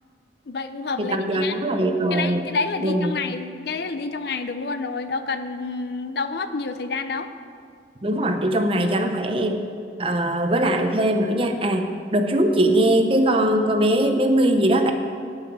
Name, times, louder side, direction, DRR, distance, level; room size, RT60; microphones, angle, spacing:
voice 1, 0.5-1.6 2.1-7.3, left 4 dB, 60° left, 9 dB, 0.6 m, -28 dB
voice 2, 1.0-2.4 2.8-3.2 8.0-9.6 10.0-14.9, right 1 dB, 30° right, 5 dB, 0.7 m, -21 dB
11.0 x 5.7 x 8.7 m, 2.3 s
head